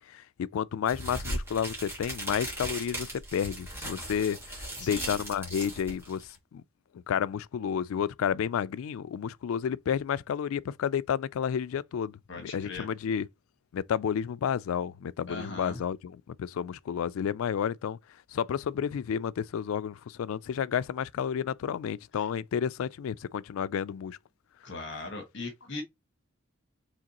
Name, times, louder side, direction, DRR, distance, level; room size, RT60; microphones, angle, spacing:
voice 1, 0.1-4.4 4.8-6.2 6.5-6.6 7.1-13.3 13.7-18.0 18.3-24.2, left 8 dB, 85° left, 0.3 m, -31 dB
sound 1, 0.9-6.4, right 1 dB, 10° right, 2.1 m, -38 dB
voice 2, 4.8-5.2 12.3-12.9 15.3-15.8 22.2-22.3 24.6-25.8, left 3 dB, 60° left, 1.6 m, -39 dB
4.9 x 3.5 x 3.0 m
head